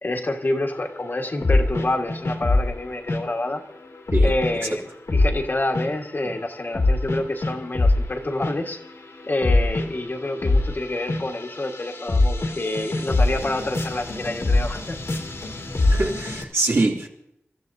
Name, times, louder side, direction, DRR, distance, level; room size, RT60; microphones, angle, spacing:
voice 1, 0.0-3.6 4.2-8.8 9.2-15.0, left 2 dB, 45° left, 3 dB, 1.6 m, -28 dB
sound 1, 1.4-2.7 3.1-3.3 4.1-4.6 5.1-6.0 6.7-8.0 8.4-8.9 9.2-16.4, left 2 dB, 80° left, 2.3 m, -23 dB
voice 2, 15.9-17.1, right 2 dB, 65° right, -2 dB, 2.8 m, -23 dB
27.0 x 14.0 x 2.7 m, 0.79 s
wide cardioid pair, 90°, 5 cm